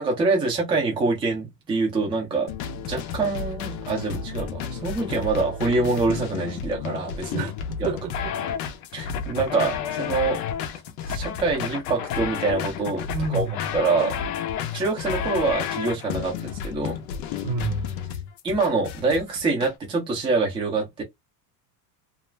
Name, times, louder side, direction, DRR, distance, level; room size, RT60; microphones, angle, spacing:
voice 1, 0.0-2.5 2.8-7.4 7.8-7.9 8.9-10.4 11.1-13.1 13.3-13.4 13.7-14.2 14.7-17.0 18.4-21.0, right 3 dB, 10° right, 0.5 m, -25 dB
sound 1, 2.5-19.7, left 7 dB, 45° left, 0.5 m, -31 dB
voice 2, 7.3-8.3 13.1-13.6 17.4-18.3, right 2 dB, 75° right, 1.1 m, -30 dB
2.4 x 2.0 x 3.1 m
supercardioid pair, 160°, 48 cm